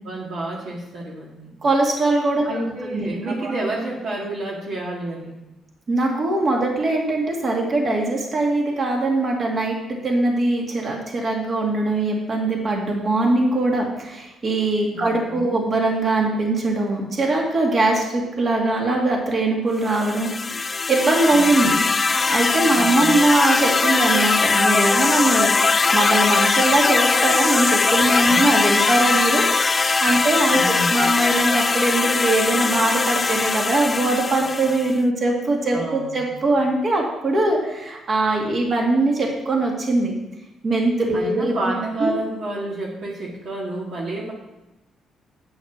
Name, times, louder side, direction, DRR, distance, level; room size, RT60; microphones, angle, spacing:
voice 1, 0.0-1.5 2.4-5.4 14.9-15.6 21.3-21.9 22.7-23.2 28.3-28.4 30.1-30.3 30.6-31.1 35.7-36.3 41.1-44.3, right 2 dB, 65° right, -3 dB, 2.1 m, -30 dB
voice 2, 1.6-2.5 2.9-3.1 3.4-3.5 5.9-9.8 10.0-20.5 20.9-21.8 22.1-29.5 29.8-40.1 40.6-42.1, right 2 dB, 45° right, 0 dB, 2.3 m, -21 dB
sound 1, 19.9-35.0, left 4 dB, 30° left, 0.3 m, -20 dB
9.0 x 6.4 x 5.9 m, 1.0 s
cardioid pair, 90°, 0 cm